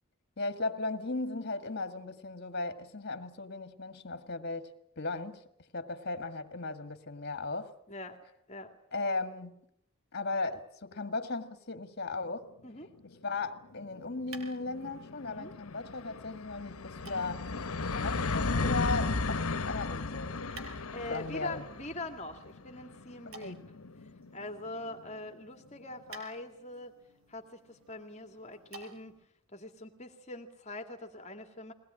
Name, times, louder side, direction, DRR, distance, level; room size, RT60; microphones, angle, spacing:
voice 1, 0.4-5.4 5.7-7.7 8.9-9.5 10.1-12.5 13.0-17.5 17.9-19.4 19.7-20.4 21.1-21.7 23.3-23.6, left 3 dB, 50° left, 1.8 m, -36 dB
voice 2, 7.9-8.2 8.5-8.7 12.6-12.9 15.3-15.5 17.0-17.3 20.9-23.6 24.3-26.9 27.3-29.2 29.5-31.7, left 2 dB, 35° left, 2.2 m, -43 dB
sound 1, 12.8-12.9 13.2-13.3 13.6-25.0, left 3 dB, 85° left, 1.0 m, -36 dB
sound 2, 13.6-29.2, right 3 dB, 75° right, 4.9 m, -56 dB
22.5 x 19.5 x 9.9 m
head